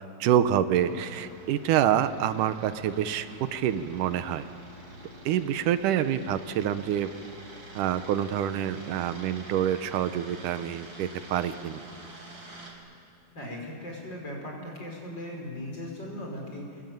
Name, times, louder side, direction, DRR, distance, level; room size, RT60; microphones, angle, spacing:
voice 1, 0.0-4.5 5.3-7.1 7.8-11.8, right 10 dB, 85° right, 11 dB, 2.4 m, -27 dB
sound 1, 0.8-12.7, right 1 dB, 35° right, 4.6 m, -47 dB
voice 2, 13.3-16.8, left 1 dB, 35° left, -1 dB, 5.9 m, -38 dB
27.0 x 21.5 x 9.3 m, 2.6 s
omnidirectional pair, 3.6 m